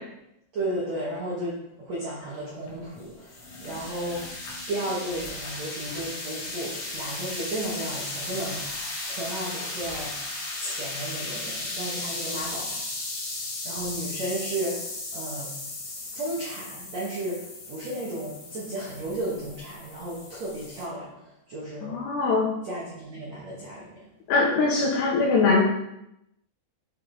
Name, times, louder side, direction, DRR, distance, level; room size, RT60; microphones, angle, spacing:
voice 1, 0.5-4.3 4.7-8.6 9.0-10.1 10.6-12.8 13.6-14.8 15.1-15.5 16.1-22.0 22.6-23.9, right 1 dB, 80° right, -6 dB, 1.5 m, -33 dB
sound 1, 2.6-20.8, left 2 dB, 50° left, 2.6 m, -36 dB
voice 2, 21.8-22.5 24.3-25.6, left 4 dB, 75° left, -2 dB, 2.6 m, -22 dB
8.9 x 5.4 x 4.0 m, 0.83 s
omnidirectional pair, 5.9 m